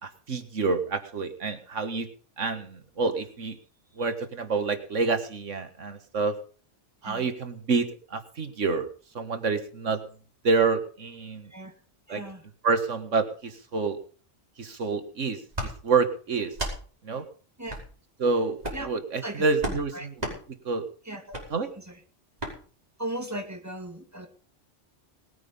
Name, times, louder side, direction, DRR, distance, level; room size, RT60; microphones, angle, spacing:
voice 1, 0.0-2.1 2.4-3.6 4.0-6.4 7.0-8.9 9.1-10.0 10.4-11.5 12.1-12.2 12.6-14.0 14.6-16.6 17.0-17.3 18.2-20.1 20.7-20.9 21.5-21.7, right 4 dB, 85° right, 8 dB, 2.0 m, -28 dB
voice 2, 12.1-12.4 17.6-17.8 18.7-18.9 19.2-20.1 21.1-21.3 21.8-22.0 23.0-24.3, right 1 dB, 15° right, 4 dB, 2.4 m, -37 dB
sound 1, 15.5-15.7 16.5-16.8 17.7-17.9 18.6-18.9 19.6-19.8 20.2-20.4 21.3-21.5 22.4-22.5, right 1 dB, 35° right, 5.1 m, -32 dB
20.0 x 9.2 x 5.5 m, 0.41 s
omnidirectional pair, 1.2 m